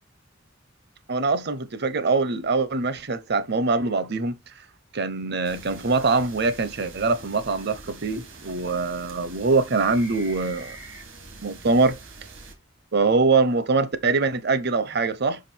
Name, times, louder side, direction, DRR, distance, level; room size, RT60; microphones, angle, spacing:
voice 1, 1.1-4.3 4.9-10.8 11.4-11.9 12.9-15.4, right 3 dB, 55° right, 0.9 m, -23 dB
sound 1, 5.4-12.5, right 3 dB, 80° right, 2.1 m, -44 dB
5.7 x 5.2 x 4.5 m
head